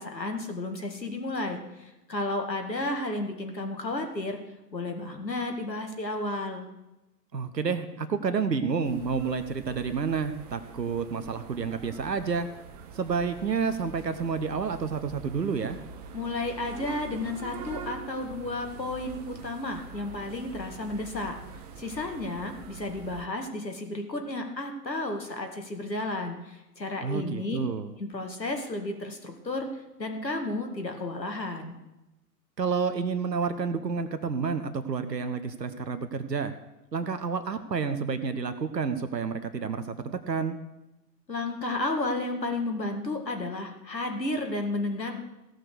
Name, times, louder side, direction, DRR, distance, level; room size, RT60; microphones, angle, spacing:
voice 1, 0.0-4.4 4.7-6.6 16.1-21.4 21.8-27.6 28.0-29.7 30.0-31.7 41.3-45.2, left 2 dB, 80° left, 4 dB, 2.1 m, -32 dB
voice 2, 7.3-12.5 12.9-15.8 27.0-27.9 32.6-36.5 36.9-40.0 40.3-40.6, right 5 dB, 75° right, 10 dB, 1.0 m, -29 dB
sound 1, 8.8-23.3, right 5 dB, 25° right, 0.7 m, -44 dB
16.0 x 6.5 x 6.5 m, 0.97 s
figure-of-eight pair, 115°, 50 cm